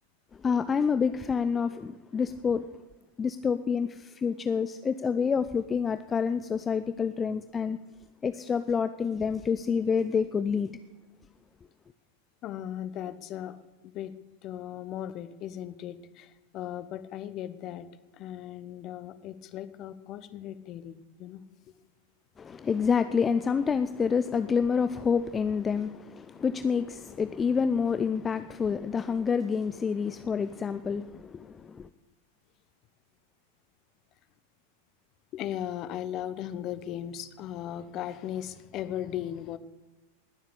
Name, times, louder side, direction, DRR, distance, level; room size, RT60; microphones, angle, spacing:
voice 1, 0.4-2.6 3.2-7.8 8.2-10.7 22.4-31.9, left 6 dB, 20° left, 0.6 m, -28 dB
voice 2, 12.4-13.6 13.8-14.1 14.4-17.9 18.1-21.4 35.3-39.6, left 11 dB, 35° left, 1.0 m, -37 dB
19.5 x 7.4 x 8.4 m
figure-of-eight pair, 90°, 0 cm